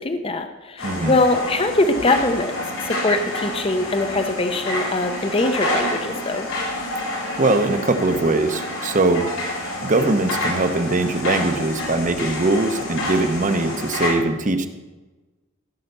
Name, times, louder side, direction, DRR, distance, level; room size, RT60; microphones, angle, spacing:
voice 1, 0.0-2.6 2.8-6.5, left 2 dB, 25° left, 7 dB, 0.7 m, -22 dB
sound 1, 0.8-14.1, left 1 dB, 85° left, 4.2 m, -28 dB
voice 2, 0.8-1.1 7.4-9.3 9.8-14.7, right 2 dB, 40° right, 8 dB, 0.9 m, -21 dB
15.5 x 5.6 x 6.8 m, 1.2 s
head